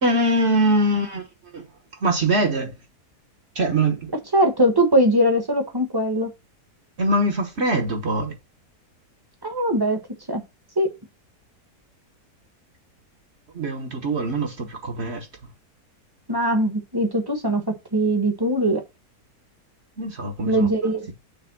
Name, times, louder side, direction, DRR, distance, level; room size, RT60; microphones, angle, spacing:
voice 1, 0.0-1.3 1.5-1.6 2.0-2.7 3.5-4.1 7.0-8.3 13.5-15.3 20.0-20.7, right 1 dB, 45° right, 1.3 m, -22 dB
voice 2, 4.3-6.3 9.4-10.0 10.3-10.4 10.8-10.9 16.3-18.8 20.4-21.1, right 1 dB, 15° right, 1.0 m, -21 dB
6.8 x 3.4 x 6.1 m
omnidirectional pair, 1.7 m